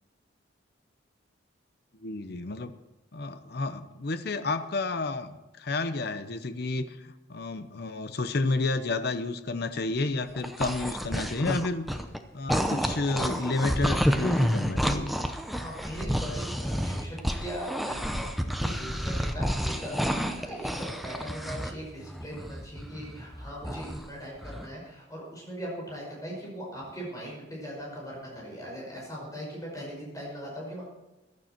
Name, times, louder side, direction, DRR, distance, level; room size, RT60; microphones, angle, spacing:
voice 1, 2.0-2.7 3.1-11.9 12.3-15.1, left 3 dB, 55° left, 10 dB, 0.7 m, -31 dB
sound 1, 10.2-12.2 12.5-21.7 22.0-24.1 24.4-24.7, equal, ahead, 0.7 m, -30 dB
voice 2, 15.6-30.8, equal, 15° left, -3 dB, 5.4 m, -40 dB
15.0 x 12.0 x 4.5 m, 1.0 s
head